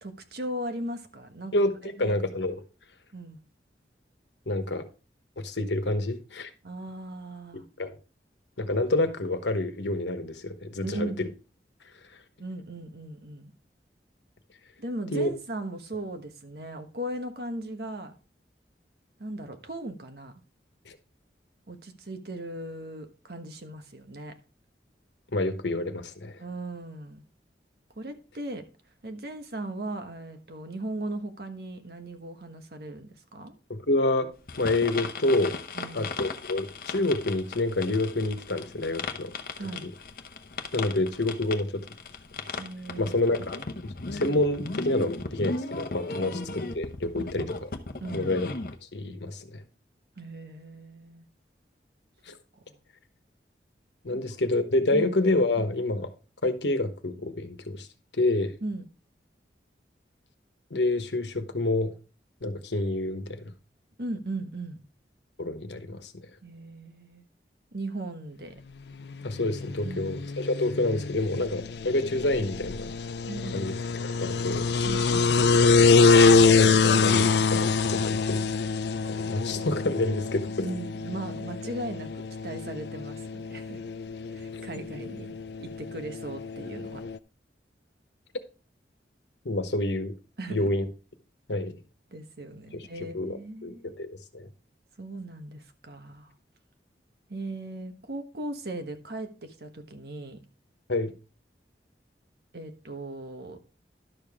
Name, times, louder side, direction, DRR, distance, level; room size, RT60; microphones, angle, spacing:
voice 1, 0.0-1.5 2.0-2.2 3.1-3.4 6.6-7.6 10.8-11.2 12.4-13.5 14.8-18.1 19.2-20.4 21.7-24.3 26.4-27.2 28.0-28.6 29.0-33.5 35.7-36.1 39.6-39.8 42.6-43.1 46.2-46.4 47.2-47.5 48.0-48.3 50.2-51.2 52.7-52.8 54.1-54.2 54.9-55.1 58.6-58.8 64.0-64.8 66.4-67.3 67.7-68.6 69.8-70.2 70.6-70.7 73.3-73.7 74.8-75.6 80.6-83.8 84.3-87.0 90.4-90.7 92.1-93.9 95.0-96.3 97.3-100.4 102.5-103.6, right 1 dB, 60° right, 1.3 m, -38 dB
voice 2, 2.0-2.5 4.5-4.9 5.4-6.5 7.8-8.0 8.6-11.3 15.1-15.3 20.9-21.0 25.3-26.4 33.7-35.6 35.9-39.3 39.8-39.9 40.7-41.8 43.0-47.7 48.1-48.5 48.9-49.6 52.3-52.4 54.0-56.1 56.4-57.9 58.2-58.6 60.7-61.9 62.4-63.5 65.4-66.1 69.2-72.9 73.5-73.7 74.0-74.7 76.5-78.5 79.1-80.7 84.5-84.6 89.4-90.1 90.5-90.8 91.5-91.8 92.7-94.1 94.3-94.5 100.9-101.1, left 2 dB, 90° left, 1.2 m, -28 dB
sound 1, 34.5-48.8, left 3 dB, 55° left, 0.9 m, -37 dB
sound 2, 69.1-87.2, left 4 dB, 70° left, 0.5 m, -25 dB
11.5 x 6.8 x 3.6 m
head